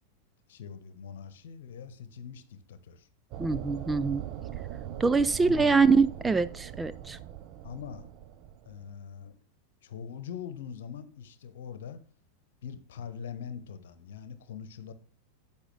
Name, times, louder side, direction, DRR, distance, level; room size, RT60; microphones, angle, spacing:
voice 1, 0.5-3.1 5.4-5.7 7.6-8.1 8.6-9.4 9.8-12.0 12.6-14.9, left 7 dB, 60° left, 1.1 m, -42 dB
sound 1, 3.3-8.9, right 11 dB, 40° right, 0.7 m, -41 dB
voice 2, 3.4-4.2 5.0-7.2, right 4 dB, 10° right, 0.3 m, -24 dB
10.0 x 7.2 x 3.3 m
figure-of-eight pair, 90°, 0 cm